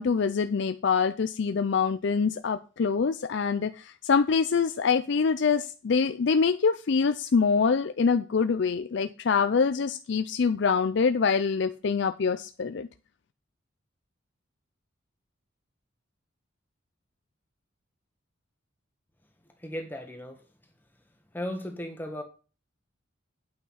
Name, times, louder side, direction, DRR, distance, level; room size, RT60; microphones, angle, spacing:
voice 1, 0.0-12.9, left 5 dB, 55° left, 0.4 m, -25 dB
voice 2, 19.6-20.5 21.3-22.2, equal, 10° left, 1.4 m, -36 dB
8.8 x 5.8 x 5.6 m
head